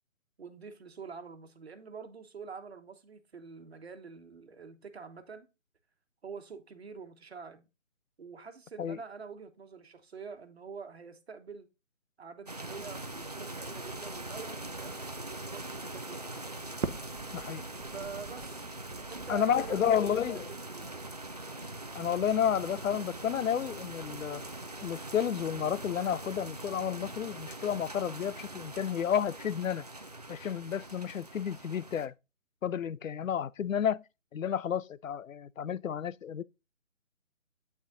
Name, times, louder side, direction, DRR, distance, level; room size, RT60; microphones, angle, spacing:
voice 1, 0.4-5.5 6.2-7.7 8.2-11.7 12.2-16.5 17.9-18.6 19.1-20.2 20.6-21.1, right 5 dB, 55° right, 1.3 m, -46 dB
sound 1, 12.5-32.1, right 2 dB, 35° right, 0.4 m, -42 dB
Crackle, 12.8-20.6, right 5 dB, 80° right, 0.8 m, -46 dB
voice 2, 17.3-17.6 19.3-20.4 21.9-24.4 24.8-29.8 30.3-32.1 32.6-34.0 34.3-36.4, left 8 dB, 85° left, 0.5 m, -31 dB
8.5 x 6.4 x 2.6 m
figure-of-eight pair, 155°, 39 cm